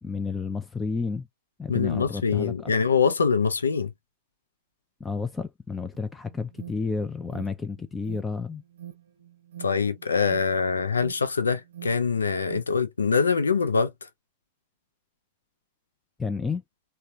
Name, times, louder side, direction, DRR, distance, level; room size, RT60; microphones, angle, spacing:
voice 1, 0.0-1.3 1.6-2.7 5.0-8.6 16.2-16.6, left 4 dB, 15° left, 0.3 m, -31 dB
voice 2, 1.7-3.9 9.6-13.9, left 5 dB, 75° left, 0.4 m, -24 dB
Alarm, 5.9-12.7, right 11 dB, 65° right, 0.6 m, -46 dB
3.6 x 2.1 x 2.6 m
figure-of-eight pair, 90°, 0 cm